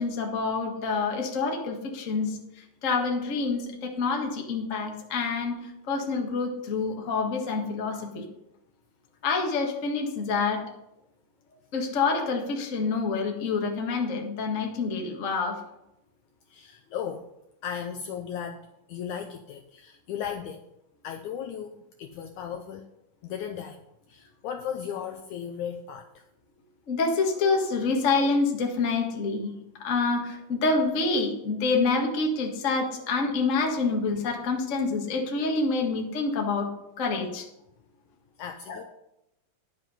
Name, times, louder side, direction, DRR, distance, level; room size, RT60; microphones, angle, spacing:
voice 1, 0.0-2.4 2.8-5.6 5.9-8.2 9.2-10.6 11.7-15.6 26.9-29.5 29.8-36.7 37.0-37.4, left 4 dB, 55° left, 1 dB, 0.8 m, -27 dB
voice 2, 16.5-17.3 17.6-20.6 21.0-22.9 23.2-23.8 24.1-26.2 38.4-38.8, left 8 dB, 90° left, 5 dB, 1.7 m, -36 dB
10.5 x 7.5 x 5.6 m, 0.85 s
omnidirectional pair, 4.2 m